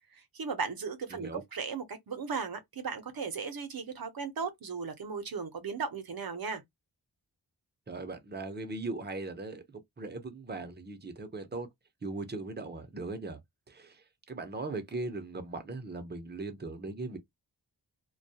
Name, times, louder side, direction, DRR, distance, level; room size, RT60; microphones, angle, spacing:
voice 1, 0.1-6.6, right 5 dB, 55° right, 0.8 m, -36 dB
voice 2, 1.1-1.4 7.9-9.6 10.0-11.7 12.0-13.4 13.7-14.0 14.3-17.2, right 3 dB, 25° right, 0.7 m, -39 dB
2.3 x 2.2 x 2.7 m
wide cardioid pair, 65°, 42 cm